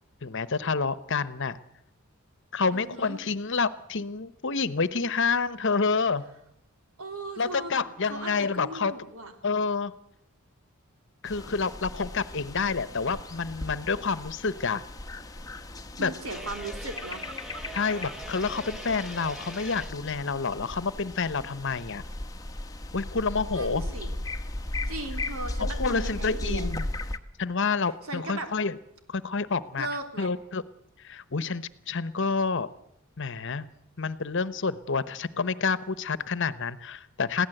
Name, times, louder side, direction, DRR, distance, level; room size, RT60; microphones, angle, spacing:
voice 1, 0.2-1.6 2.5-6.2 7.4-8.9 9.4-9.9 11.2-14.8 16.0-16.1 17.7-22.0 22.9-23.8 25.6-26.9 27.4-28.8 29.1-29.9 30.2-30.6 31.0-32.7 33.2-33.7 34.0-37.5, left 4 dB, 60° left, 16 dB, 1.0 m, -28 dB
voice 2, 2.7-3.2 7.0-9.3 16.0-17.2 23.5-24.1 24.9-26.7 28.1-28.5 29.8-30.3, right 2 dB, 85° right, 6 dB, 3.4 m, -37 dB
sound 1, 11.2-27.2, left 1 dB, 15° left, 1.1 m, -37 dB
sound 2, 16.3-19.9, equal, ahead, 1.2 m, -42 dB
22.0 x 16.0 x 7.9 m, 0.77 s
head